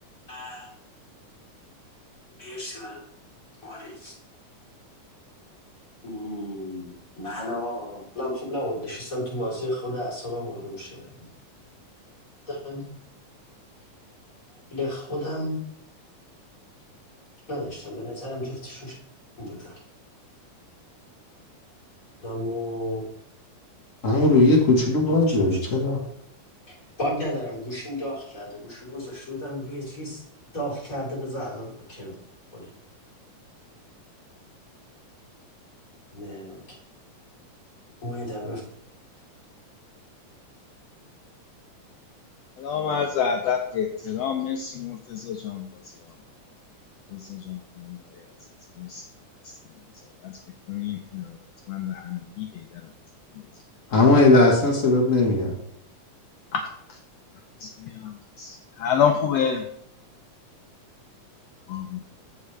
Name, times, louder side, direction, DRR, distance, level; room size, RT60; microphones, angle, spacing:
voice 1, 0.3-0.7 2.4-3.0 3.6-4.2 6.0-11.2 12.5-12.8 14.5-15.6 17.5-18.9 19.4-19.8 22.2-23.0 25.1-25.8 27.0-30.2 30.5-32.2 32.5-32.7 36.1-36.6 38.0-38.6, left 1 dB, 25° left, 3.8 m, -33 dB
voice 2, 24.0-26.0 53.9-55.5, left 2 dB, 55° left, 0.8 m, -18 dB
voice 3, 42.6-45.9 47.1-48.2 48.8-49.0 49.4-49.5 50.2-50.4 50.7-51.4 51.7-52.9 53.3-53.5 56.5-56.6 56.9-57.0 57.6-59.6 61.7-62.0, left 7 dB, 80° left, 1.5 m, -28 dB
14.0 x 4.9 x 3.2 m
omnidirectional pair, 3.5 m